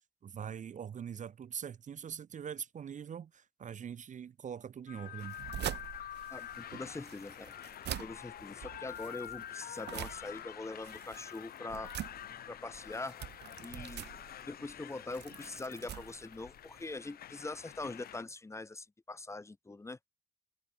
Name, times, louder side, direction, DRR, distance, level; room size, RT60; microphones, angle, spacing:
voice 1, 0.2-5.4, right 8 dB, 45° right, 0.6 m, -43 dB
sound 1, 4.9-18.2, left 11 dB, 60° left, 0.5 m, -47 dB
sound 2, 5.2-16.9, right 12 dB, 85° right, 0.7 m, -45 dB
voice 2, 6.3-7.5 7.9-11.9 12.5-13.2 13.6-14.1 14.5-20.0, left 2 dB, 15° left, 0.9 m, -43 dB
wide cardioid pair, 145°, 17 cm